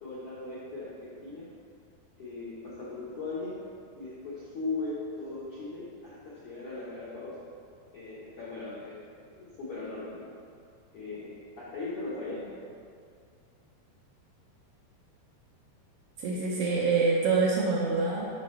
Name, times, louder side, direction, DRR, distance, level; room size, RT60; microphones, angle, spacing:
voice 1, 0.0-1.5 2.2-3.6 3.9-7.4 7.9-9.1 9.3-10.2 10.9-12.5, left 3 dB, 60° left, -9 dB, 1.5 m, -38 dB
voice 2, 16.2-18.3, right 4 dB, 70° right, -4 dB, 2.2 m, -26 dB
12.5 x 6.2 x 3.3 m, 2.2 s
omnidirectional pair, 4.7 m